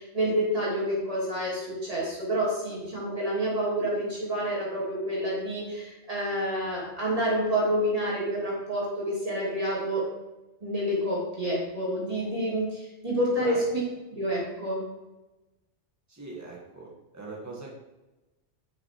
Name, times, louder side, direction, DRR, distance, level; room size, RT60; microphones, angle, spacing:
voice 1, 0.0-10.0 10.6-13.8 14.1-14.8, equal, 30° right, -6 dB, 3.1 m, -28 dB
voice 2, 16.1-17.7, right 3 dB, 15° right, -3 dB, 1.8 m, -41 dB
7.3 x 6.4 x 4.7 m, 1.1 s
omnidirectional pair, 1.2 m